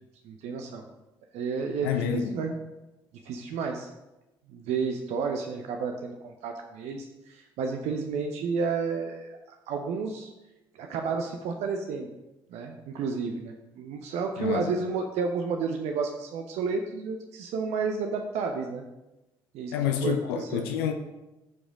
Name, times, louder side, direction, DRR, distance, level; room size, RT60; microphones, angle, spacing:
voice 1, 0.2-0.9 1.3-2.6 3.2-3.9 4.5-9.3 9.7-10.3 10.7-12.1 12.5-18.8 19.5-19.7 20.0-20.7, right 5 dB, 60° right, 4 dB, 0.8 m, -31 dB
voice 2, 1.8-2.3 14.4-14.7 19.7-20.9, left 8 dB, 70° left, 6 dB, 0.6 m, -28 dB
14.0 x 5.0 x 3.7 m, 1.0 s
figure-of-eight pair, 45°, 13 cm